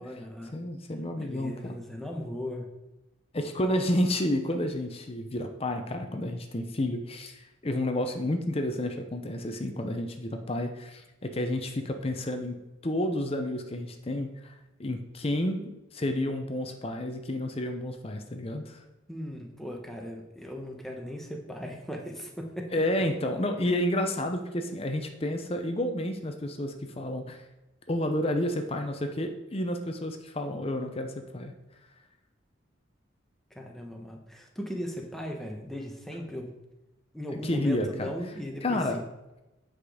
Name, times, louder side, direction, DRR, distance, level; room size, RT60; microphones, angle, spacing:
voice 1, 0.0-0.5 1.2-2.7 19.1-22.7 23.7-23.8 33.5-36.5 37.1-39.0, equal, ahead, 1 dB, 1.0 m, -38 dB
voice 2, 0.5-1.8 3.3-12.6 12.8-14.5 14.8-18.8 22.7-27.4 27.9-31.5 37.3-38.1 38.6-39.0, left 1 dB, 30° left, 5 dB, 0.6 m, -30 dB
8.3 x 5.1 x 4.9 m, 0.98 s
head